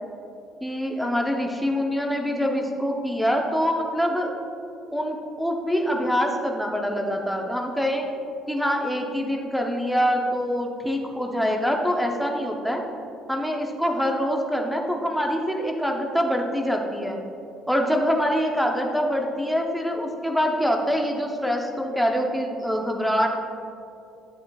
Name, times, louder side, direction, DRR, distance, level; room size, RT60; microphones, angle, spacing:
voice 1, 0.6-4.3 4.9-8.1 8.5-12.8 13.3-17.2 17.7-23.4, equal, ahead, 1 dB, 0.6 m, -25 dB
10.5 x 6.7 x 2.3 m, 2.6 s
cardioid pair, 170°, 0 cm